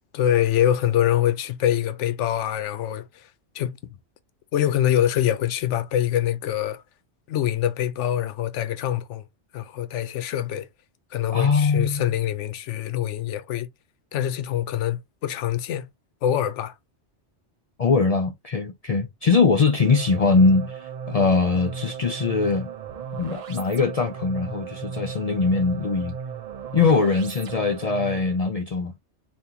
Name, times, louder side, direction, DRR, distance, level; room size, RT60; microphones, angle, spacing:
voice 1, 0.1-3.8 4.5-6.8 7.3-9.2 9.5-10.7 11.1-13.7 14.1-15.9 16.2-16.7, left 11 dB, 85° left, 0.9 m, -24 dB
voice 2, 11.3-12.0 17.8-22.7 23.1-26.1 26.7-28.9, left 4 dB, 55° left, 0.4 m, -21 dB
sound 1, 19.6-28.4, right 6 dB, 50° right, 0.4 m, -36 dB
3.6 x 2.5 x 2.7 m
omnidirectional pair, 1.2 m